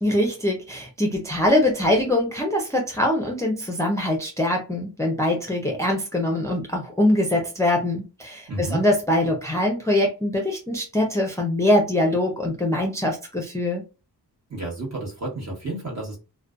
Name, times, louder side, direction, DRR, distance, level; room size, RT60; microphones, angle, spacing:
voice 1, 0.0-13.8, left 1 dB, 10° left, 0 dB, 0.5 m, -23 dB
voice 2, 8.5-8.8 14.5-16.2, right 2 dB, 40° right, -2 dB, 1.2 m, -31 dB
2.4 x 2.2 x 2.4 m, 0.31 s
wide cardioid pair, 75°, 40 cm